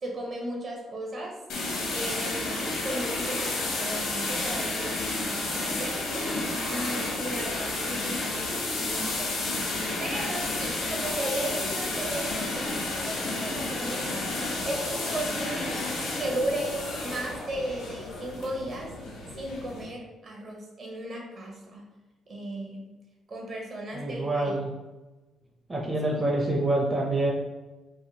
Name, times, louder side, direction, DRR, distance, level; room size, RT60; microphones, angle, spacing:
voice 1, 0.0-1.3 1.9-6.0 6.7-9.3 10.0-14.2 14.6-15.7 16.2-18.9 19.4-21.9 22.3-22.9 23.3-24.5, right 1 dB, 50° right, -1 dB, 0.9 m, -35 dB
sound 1, 1.5-19.8, left 2 dB, 90° left, 0.9 m, -31 dB
voice 2, 23.9-24.7 25.7-27.3, right 2 dB, 20° right, -3 dB, 0.5 m, -26 dB
3.4 x 2.2 x 2.8 m, 1.1 s
cardioid pair, 90°, 0 cm